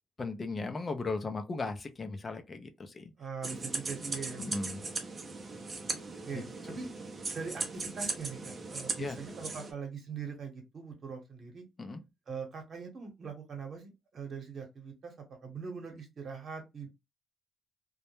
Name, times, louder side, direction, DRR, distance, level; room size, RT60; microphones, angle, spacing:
voice 1, 0.2-3.1 4.4-4.8 6.3-6.4 9.0-9.2 11.8-12.0, left 3 dB, 30° left, 0.5 m, -37 dB
voice 2, 3.2-4.5 6.3-6.9 7.3-11.6 12.3-15.1 15.4-16.9, right 5 dB, 55° right, 1.0 m, -42 dB
sound 1, 3.4-9.7, right 3 dB, 35° right, 0.5 m, -38 dB
2.2 x 2.0 x 3.0 m
cardioid pair, 90°, 0 cm